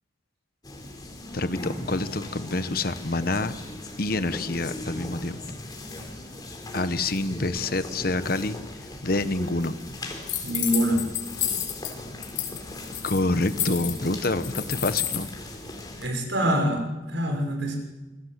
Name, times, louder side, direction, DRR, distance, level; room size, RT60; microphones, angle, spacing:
sound 1, 0.6-16.1, left 1 dB, 20° left, 4.1 m, -38 dB
voice 1, 1.3-3.5 4.0-5.4 6.7-8.6 9.0-9.8 13.0-15.3, left 2 dB, 50° left, 12 dB, 1.2 m, -27 dB
sound 2, 10.3-11.9 12.2-12.6 12.8-15.2, left 11 dB, 75° left, 4.9 m, -30 dB
voice 2, 10.4-11.0 16.0-17.8, equal, 75° right, 3 dB, 6.4 m, -25 dB
27.0 x 21.5 x 8.2 m, 1.2 s
head